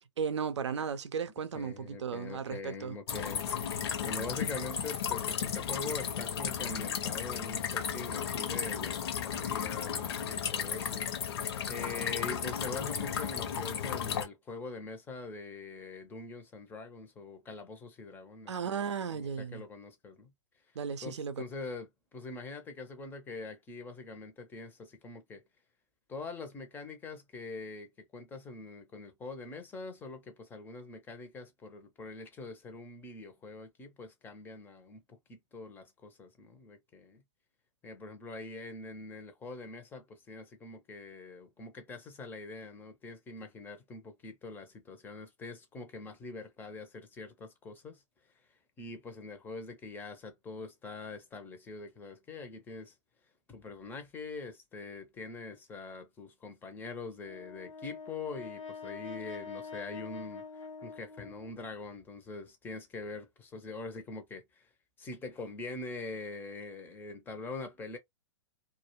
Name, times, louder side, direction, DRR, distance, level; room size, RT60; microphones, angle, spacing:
voice 1, 0.2-3.0 18.5-19.6 20.8-21.4, right 6 dB, 65° right, 0.5 m, -35 dB
voice 2, 1.5-3.5 4.0-11.0 11.7-18.8 19.1-20.3 21.0-25.4 26.1-37.2 37.8-48.0 48.8-52.9 53.5-64.7 65.0-68.0, left 3 dB, 10° left, 0.6 m, -43 dB
sound 1, 3.1-14.2, left 8 dB, 55° left, 0.7 m, -34 dB
Brass instrument, 57.2-61.7, left 5 dB, 85° left, 0.7 m, -45 dB
2.3 x 2.2 x 2.9 m
figure-of-eight pair, 115°, 16 cm